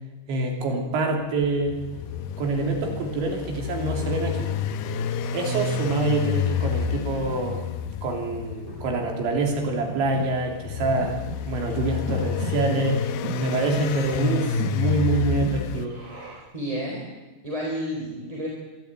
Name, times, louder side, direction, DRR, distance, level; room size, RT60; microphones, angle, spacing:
voice 1, 0.3-1.8 2.4-4.5 5.3-7.7 8.0-13.0 13.4-16.0, right 3 dB, 75° right, 2 dB, 5.3 m, -26 dB
sound 1, 1.4-15.9, left 7 dB, 75° left, 2.6 m, -29 dB
Breathing, 8.1-16.6, right 3 dB, 35° right, 7.1 m, -40 dB
voice 2, 16.5-17.0 17.4-18.5, equal, 10° right, -3 dB, 3.5 m, -30 dB
23.0 x 13.0 x 9.3 m, 1.1 s
omnidirectional pair, 5.3 m